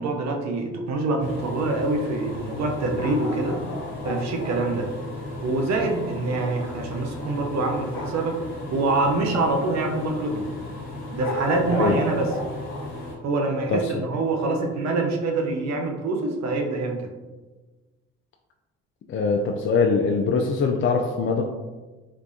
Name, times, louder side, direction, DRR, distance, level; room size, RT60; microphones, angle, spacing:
voice 1, 0.0-3.7 4.0-4.9 5.4-8.4 8.7-10.5 11.1-12.3 13.2-17.1, right 2 dB, 55° right, 3 dB, 0.7 m, -25 dB
sound 1, 1.2-13.1, left 2 dB, 65° left, 1.4 m, -36 dB
sound 2, 2.9-4.8 7.9-8.3 10.2-10.3 11.2-13.0 13.9-14.0, left 1 dB, 80° left, 0.7 m, -35 dB
voice 2, 13.7-14.0 19.1-21.5, left 4 dB, 40° left, 2 dB, 0.4 m, -22 dB
3.4 x 3.2 x 2.6 m, 1.2 s
hypercardioid pair, 55°, 32 cm